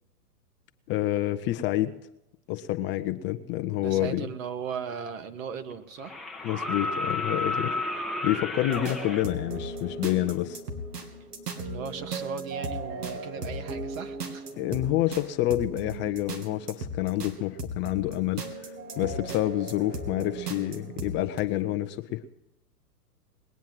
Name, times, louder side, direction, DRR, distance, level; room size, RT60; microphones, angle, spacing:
voice 1, 0.9-1.9 2.5-4.3 6.4-7.8 8.2-10.6 14.5-18.7 19.0-22.2, left 14 dB, 25° left, 9 dB, 0.6 m, -28 dB
voice 2, 3.8-6.2 11.6-14.5, right 6 dB, 60° right, 8 dB, 2.0 m, -37 dB
sound 1, 4.9-5.0 6.0-9.2 11.0-11.1, left 3 dB, ahead, 0.9 m, -31 dB
sound 2, 8.7-21.4, right 2 dB, 80° right, 2.9 m, -37 dB
20.5 x 9.4 x 7.5 m, 0.86 s
hypercardioid pair, 120°, 46 cm